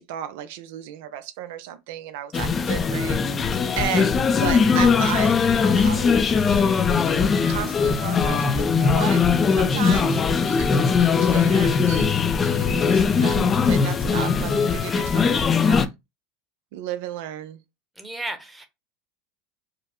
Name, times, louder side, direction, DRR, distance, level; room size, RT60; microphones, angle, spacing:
voice 1, 0.0-6.8 7.1-9.2 9.5-12.2 12.4-15.8 16.7-17.6, right 11 dB, 75° right, 0.5 m, -34 dB
sound 1, 2.3-15.9, left 5 dB, 25° left, 0.5 m, -20 dB
voice 2, 18.0-18.7, right 2 dB, 5° right, 0.9 m, -33 dB
5.1 x 2.1 x 3.0 m
supercardioid pair, 120°, 0 cm